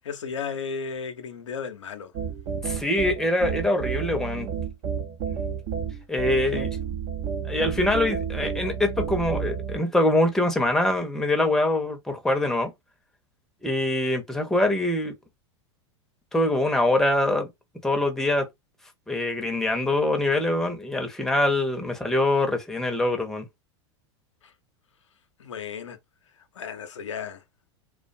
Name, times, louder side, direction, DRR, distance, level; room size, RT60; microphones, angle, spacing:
voice 1, 0.0-2.1 25.4-26.0 26.6-27.4, left 6 dB, 90° left, 0.5 m, -34 dB
sound 1, 2.1-9.8, right 7 dB, 50° right, 0.6 m, -30 dB
voice 2, 2.5-4.5 6.1-6.7 7.4-12.7 13.6-15.1 16.3-17.5 17.8-18.5 19.1-23.5, left 1 dB, 5° left, 0.6 m, -24 dB
2.4 x 2.2 x 2.5 m
hypercardioid pair, 100°, 15 cm